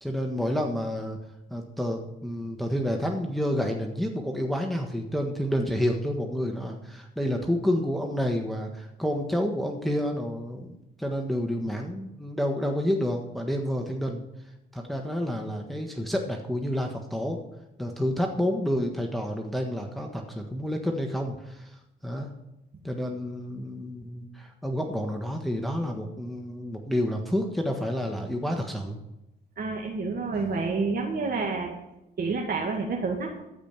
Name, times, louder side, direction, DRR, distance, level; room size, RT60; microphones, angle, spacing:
voice 1, 0.0-1.2 1.5-14.2 14.7-17.4 17.8-22.3 22.8-29.0, equal, ahead, 2 dB, 1.4 m, -29 dB
voice 2, 29.6-31.7 32.2-33.4, right 4 dB, 50° right, 0 dB, 2.0 m, -29 dB
14.5 x 5.1 x 8.9 m, 0.92 s
cardioid pair, 90°, 20 cm